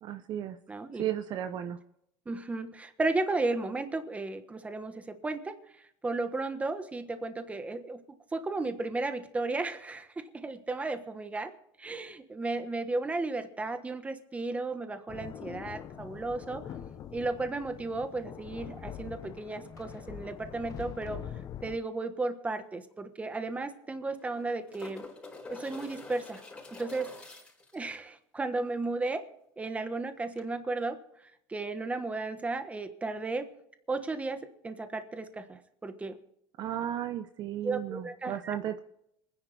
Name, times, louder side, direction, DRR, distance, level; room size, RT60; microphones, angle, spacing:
voice 1, 0.0-0.6 1.0-1.8 36.6-38.8, right 10 dB, 45° right, 9 dB, 0.9 m, -34 dB
voice 2, 0.7-1.0 2.3-5.6 6.0-8.0 8.3-11.5 11.8-16.6 17.1-21.2 21.6-25.0 25.5-26.4 26.7-27.1 27.7-29.2 29.6-31.0 31.5-33.5 33.9-36.2 37.6-38.6, right 3 dB, 15° right, 8 dB, 1.3 m, -34 dB
sound 1, 15.1-21.8, left 9 dB, 35° left, 0.9 m, -43 dB
sound 2, 22.6-22.7 22.9-23.0 24.0-27.8 30.3-30.4, left 3 dB, 10° left, 4.7 m, -46 dB
26.5 x 10.0 x 3.5 m, 0.76 s
cardioid pair, 130°, 10 cm